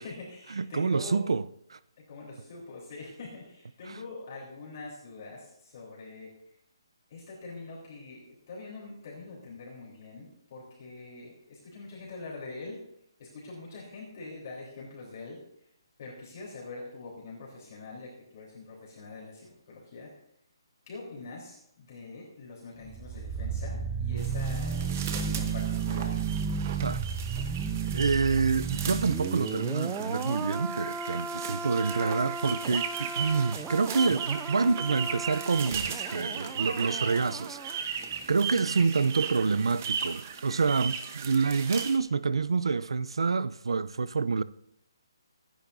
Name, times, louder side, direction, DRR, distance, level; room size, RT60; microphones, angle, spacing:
voice 1, 0.0-1.2 2.0-6.3 7.1-12.8 13.2-15.4 16.0-20.1 20.9-26.2 38.6-38.8, left 3 dB, 35° left, 3.7 m, -44 dB
voice 2, 0.6-1.8 26.8-27.0 27.9-37.9 38.3-44.4, right 4 dB, 85° right, 0.6 m, -27 dB
sound 1, 22.8-37.8 38.1-38.2, right 6 dB, 5° right, 0.4 m, -34 dB
sound 2, 24.2-42.0, right 7 dB, 30° right, 1.0 m, -37 dB
24.5 x 10.0 x 2.7 m
hypercardioid pair, 170°, 3 cm